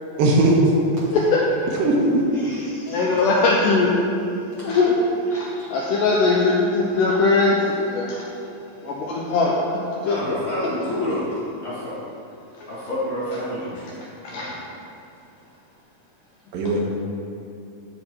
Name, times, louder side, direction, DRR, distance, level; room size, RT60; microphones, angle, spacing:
voice 1, 0.2-0.7 1.8-2.3 8.8-8.9 16.5-16.8, right 2 dB, 75° right, -1 dB, 2.7 m, -18 dB
voice 2, 1.1-1.5 2.9-4.0 4.6-5.0 5.3-8.2 8.8-9.5 10.1-10.2 14.2-14.6, left 3 dB, 80° left, -3 dB, 1.9 m, -20 dB
voice 3, 2.4-3.0 5.3-5.8 10.0-11.2 11.6-12.0 12.7-13.9 14.3-14.5, left 1 dB, 50° left, -9 dB, 1.8 m, -29 dB
12.5 x 4.6 x 4.3 m, 2.6 s
omnidirectional pair, 4.4 m